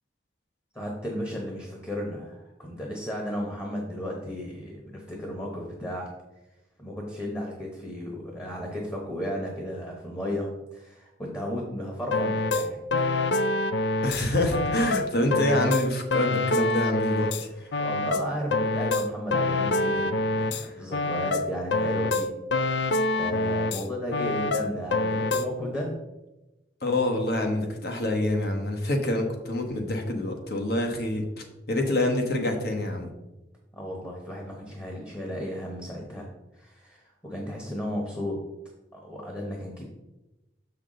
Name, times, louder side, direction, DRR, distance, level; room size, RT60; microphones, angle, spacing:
voice 1, 0.7-6.1 6.8-12.8 17.3-22.3 23.2-25.9 33.7-36.3 36.5-38.4 38.9-39.8, equal, 15° left, 0 dB, 1.0 m, -34 dB
sound 1, 12.1-14.2 14.5-17.4 17.7-20.6 20.9-23.8 24.1-25.5, left 2 dB, 80° left, 0.5 m, -26 dB
voice 2, 14.0-17.7 20.5-20.7 26.8-33.1, left 1 dB, 55° left, 3 dB, 1.1 m, -27 dB
6.8 x 5.8 x 3.8 m, 1.0 s
head